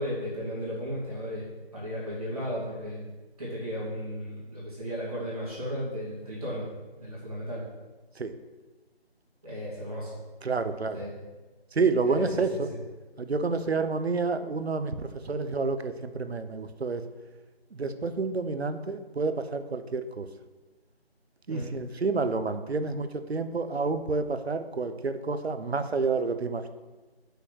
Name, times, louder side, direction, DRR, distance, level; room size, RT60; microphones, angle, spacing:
voice 1, 0.0-3.0 3.4-6.7 7.0-7.6 9.4-10.2 10.9-11.1 12.0-12.6 21.5-21.7, equal, 35° right, -7 dB, 2.4 m, -35 dB
voice 2, 10.4-11.0 11.7-12.7 13.2-17.0 17.7-20.3 21.5-26.7, right 4 dB, 80° right, 10 dB, 0.9 m, -29 dB
6.3 x 5.5 x 6.3 m, 1.2 s
figure-of-eight pair, 175°, 32 cm